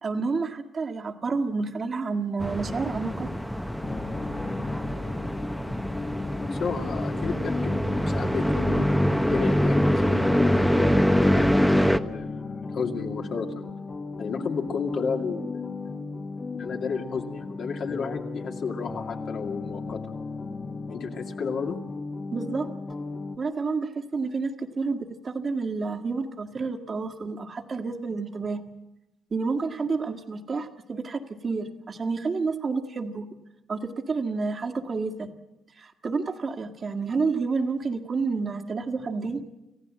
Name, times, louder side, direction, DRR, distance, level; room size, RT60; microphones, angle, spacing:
voice 1, 0.0-3.3 22.3-22.7 23.4-28.6 29.3-33.3 33.7-35.3 35.8-39.4, right 4 dB, 40° right, 5 dB, 1.8 m, -29 dB
sound 1, 2.4-12.0, equal, ahead, 1.0 m, -24 dB
sound 2, 3.8-23.4, left 3 dB, 30° left, 1.4 m, -36 dB
voice 2, 6.5-11.0 12.0-13.7 14.2-15.6 16.5-20.0 20.9-21.8, left 5 dB, 60° left, 2 dB, 2.4 m, -32 dB
28.0 x 15.0 x 7.6 m, 1.0 s
cardioid pair, 90°, 0 cm